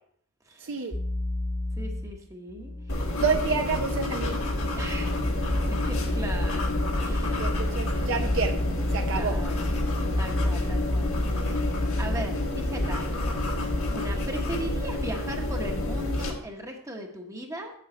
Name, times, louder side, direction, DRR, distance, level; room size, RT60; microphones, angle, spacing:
voice 1, 0.6-1.0 3.2-4.4 7.4-8.6 8.9-9.4, right 5 dB, 65° right, 4 dB, 0.7 m, -29 dB
sound 1, 0.9-2.1 2.5-12.3, left 2 dB, 35° left, 1.1 m, -33 dB
voice 2, 1.8-2.7 4.7-5.2 5.9-6.6 7.0-7.4 9.1-9.5 10.2-13.0 13.9-17.7, right 1 dB, 15° right, 2 dB, 1.0 m, -38 dB
sound 2, 2.9-16.3, left 1 dB, 85° left, 1.5 m, -28 dB
7.6 x 7.1 x 4.3 m, 0.66 s
head